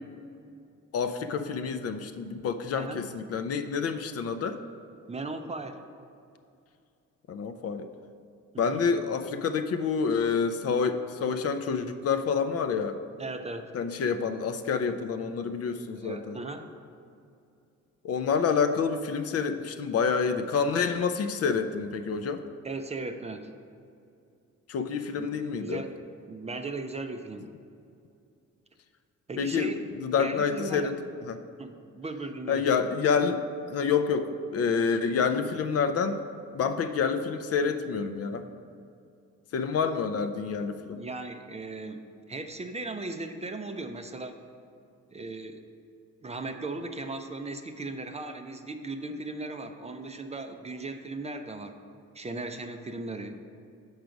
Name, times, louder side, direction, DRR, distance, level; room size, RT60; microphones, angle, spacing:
voice 1, 0.9-4.6 7.3-7.9 8.6-13.0 13.7-16.4 18.0-22.4 24.7-25.8 29.4-29.7 30.0-31.4 32.5-33.4 33.7-36.2 36.5-38.5 39.5-41.0, left 5 dB, 55° left, 9 dB, 0.5 m, -28 dB
voice 2, 5.1-5.8 8.5-8.8 13.2-13.7 16.0-16.7 22.6-23.5 25.2-25.9 26.3-27.5 29.3-29.8 30.1-30.9 31.6-32.6 41.0-44.4 45.1-45.6 46.2-51.7 52.1-53.4, right 3 dB, 20° right, 6 dB, 0.4 m, -37 dB
6.4 x 4.7 x 5.1 m, 2.5 s
cardioid pair, 90°, 30 cm